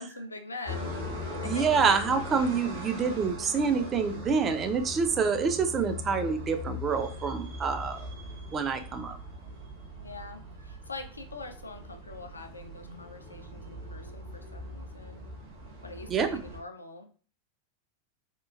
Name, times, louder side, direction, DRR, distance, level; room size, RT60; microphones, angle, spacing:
voice 1, 0.0-1.8 10.0-15.2 15.8-17.1, left 3 dB, 80° left, 6 dB, 0.3 m, -44 dB
sound 1, 0.6-16.6, left 1 dB, 55° right, 0.9 m, -40 dB
voice 2, 1.4-8.1 8.5-9.2 16.1-16.4, right 5 dB, 25° right, 7 dB, 0.4 m, -27 dB
2.9 x 2.4 x 2.3 m, 0.40 s
figure-of-eight pair, 90°, 0 cm